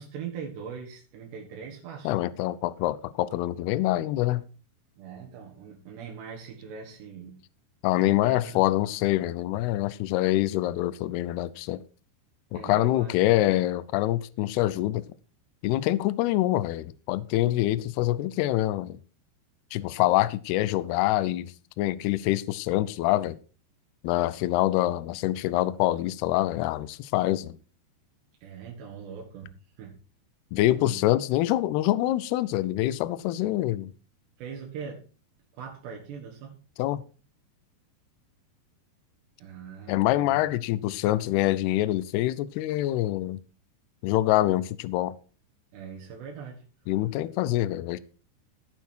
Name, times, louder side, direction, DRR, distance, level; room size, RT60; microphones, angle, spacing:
voice 1, 0.0-2.2 5.0-7.4 7.9-8.6 12.5-13.2 28.4-29.9 30.6-31.0 34.4-35.1 35.5-36.6 39.4-40.4 45.7-46.6, right 6 dB, 80° right, 3.8 m, -41 dB
voice 2, 2.0-4.4 7.8-11.8 12.5-15.0 15.6-19.0 19.7-23.4 24.0-27.6 30.5-33.9 36.8-37.0 39.9-43.4 44.0-45.1 46.9-48.0, left 15 dB, 80° left, 2.5 m, -25 dB
16.5 x 5.9 x 4.5 m
omnidirectional pair, 4.9 m